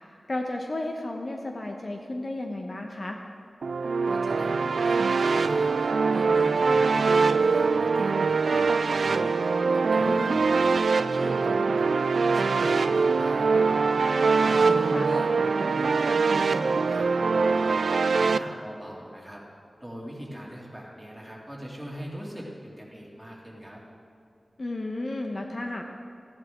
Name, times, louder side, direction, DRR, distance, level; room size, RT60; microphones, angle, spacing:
voice 1, 0.3-3.2 8.5-8.7 10.1-10.4 14.9-15.1 24.6-25.8, left 2 dB, 45° left, 2 dB, 0.8 m, -33 dB
sound 1, 3.6-18.4, right 4 dB, 90° right, 0.3 m, -23 dB
voice 2, 4.1-11.9 12.3-14.1 14.4-19.4 19.8-23.8, equal, 5° right, -4 dB, 2.5 m, -40 dB
15.5 x 10.5 x 3.7 m, 2.5 s
wide cardioid pair, 80°, 0 cm